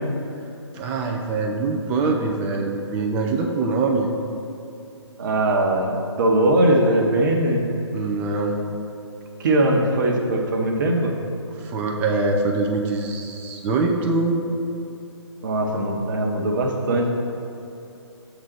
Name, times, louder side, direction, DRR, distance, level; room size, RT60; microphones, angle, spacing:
voice 1, 0.7-4.1 7.9-8.6 11.5-14.4, right 3 dB, 10° right, 1 dB, 0.4 m, -23 dB
voice 2, 5.2-7.7 9.4-11.1 15.4-17.1, right 1 dB, 45° right, 1 dB, 1.0 m, -20 dB
7.2 x 3.9 x 6.2 m, 2.7 s
figure-of-eight pair, 140°, 15 cm